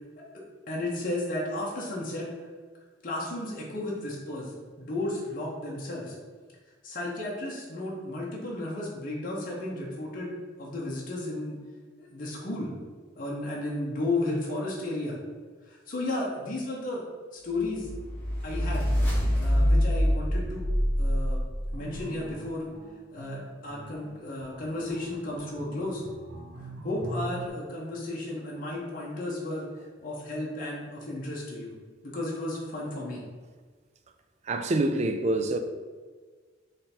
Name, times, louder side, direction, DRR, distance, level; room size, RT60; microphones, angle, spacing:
voice 1, 0.7-2.3 3.0-6.2 6.8-11.6 12.0-12.7 13.1-15.2 15.7-17.0 17.3-17.9 18.4-18.9 19.3-20.6 21.0-21.4 21.7-22.7 23.1-26.0 26.6-29.7 30.0-31.7 32.0-33.2, left 2 dB, 45° left, -4 dB, 0.9 m, -33 dB
sound 1, 17.8-22.0, equal, 5° left, 1.3 m, -25 dB
sound 2, 21.7-27.5, right 1 dB, 70° right, 0.8 m, -41 dB
voice 2, 34.5-35.6, right 2 dB, 35° right, 7 dB, 0.3 m, -26 dB
3.7 x 3.4 x 4.3 m, 1.5 s
head